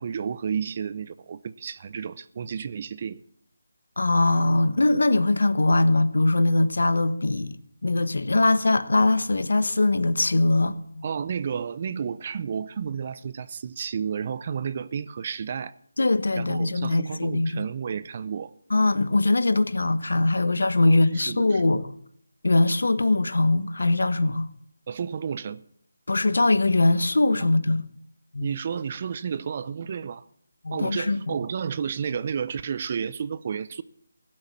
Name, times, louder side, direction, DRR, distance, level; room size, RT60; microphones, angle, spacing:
voice 1, 0.0-3.2 11.0-15.8 16.4-18.5 20.9-21.9 24.9-25.6 27.4-27.5 28.4-30.2 30.7-33.8, right 7 dB, 35° right, 0.6 m, -31 dB
voice 2, 4.0-7.6 7.8-11.0 16.0-17.7 18.7-21.8 22.4-24.5 26.1-27.9 28.3-28.5 30.6-31.3, left 2 dB, 75° left, 1.2 m, -22 dB
17.0 x 7.8 x 8.5 m
figure-of-eight pair, 165°, 0 cm